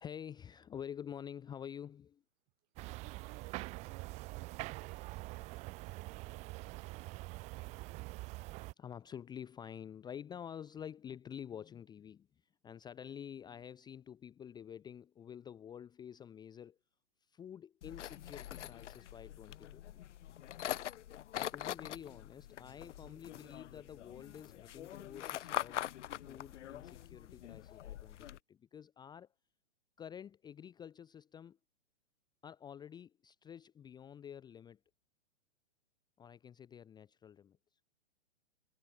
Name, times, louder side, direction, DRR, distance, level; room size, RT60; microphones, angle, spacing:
voice 1, 0.0-2.2 8.8-16.8 17.2-19.8 21.4-25.8 26.2-29.3 30.0-31.6 32.4-34.8 36.2-37.8, left 8 dB, 10° left, 0.8 m, -49 dB
sound 1, 2.8-8.7, right 22 dB, 20° right, 0.5 m, -45 dB
voice 2, 3.0-7.1, right 32 dB, 35° right, 3.7 m, -60 dB
sound 2, 17.8-28.4, left 12 dB, 80° left, 0.5 m, -44 dB
hypercardioid pair, 125°, 35 cm